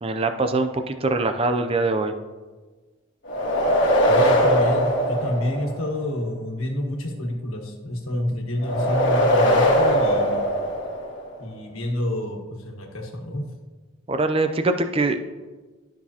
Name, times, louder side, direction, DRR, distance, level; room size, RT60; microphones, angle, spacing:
voice 1, 0.0-2.1 14.1-15.3, right 2 dB, 25° right, 7 dB, 0.5 m, -23 dB
sound 1, 3.3-6.0 8.6-11.3, equal, 55° left, 1.6 m, -20 dB
voice 2, 4.1-10.5 11.4-13.5, left 1 dB, 85° left, 1 dB, 1.5 m, -28 dB
12.0 x 6.1 x 2.9 m, 1.3 s
head